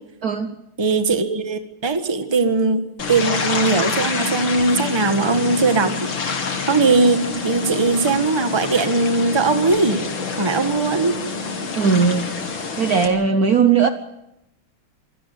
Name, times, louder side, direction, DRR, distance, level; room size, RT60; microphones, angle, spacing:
voice 1, 0.2-0.5 11.8-12.3 12.8-13.9, right 5 dB, 55° right, 1.2 m, -18 dB
voice 2, 0.8-2.8 3.1-6.1 6.6-10.0 10.3-11.2, right 3 dB, 15° right, 1.2 m, -19 dB
sound 1, 3.0-13.1, left 4 dB, 65° left, 3.0 m, -27 dB
26.0 x 17.0 x 7.9 m
omnidirectional pair, 2.4 m